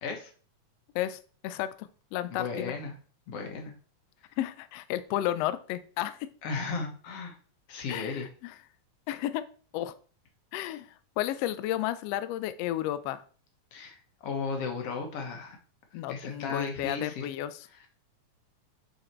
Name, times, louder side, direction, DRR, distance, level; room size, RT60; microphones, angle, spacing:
voice 1, 0.9-2.7 4.4-6.3 7.9-8.5 9.1-9.4 9.7-9.9 10.5-10.9 11.2-13.2 15.9-17.6, left 13 dB, 85° left, 13 dB, 1.4 m, -32 dB
voice 2, 2.3-2.9 3.3-3.7 6.4-7.4 7.7-8.3 13.7-15.6 16.1-17.3 17.7-17.9, left 5 dB, 60° left, 4 dB, 2.0 m, -35 dB
8.1 x 4.1 x 4.4 m, 0.42 s
omnidirectional pair, 3.5 m